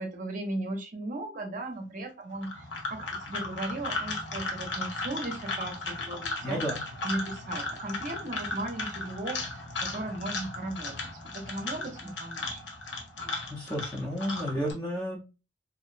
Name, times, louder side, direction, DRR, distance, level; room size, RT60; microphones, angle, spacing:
voice 1, 0.0-6.6 7.0-11.0 11.3-12.6, right 2 dB, 45° right, 4 dB, 0.6 m, -36 dB
sound 1, 2.3-14.7, left 2 dB, 75° left, 0.7 m, -36 dB
voice 2, 6.4-6.8 13.5-15.2, equal, 15° left, -5 dB, 0.5 m, -32 dB
2.5 x 2.0 x 2.4 m, 0.29 s
head